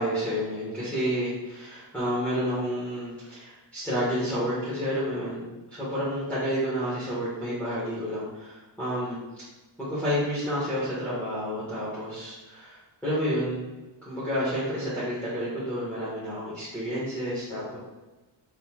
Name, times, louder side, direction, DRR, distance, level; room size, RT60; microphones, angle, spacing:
voice 1, 0.0-9.2 9.8-13.7 14.0-17.8, equal, 5° left, -12 dB, 1.4 m, -30 dB
5.3 x 4.1 x 2.3 m, 1.2 s
wide cardioid pair, 170°, 49 cm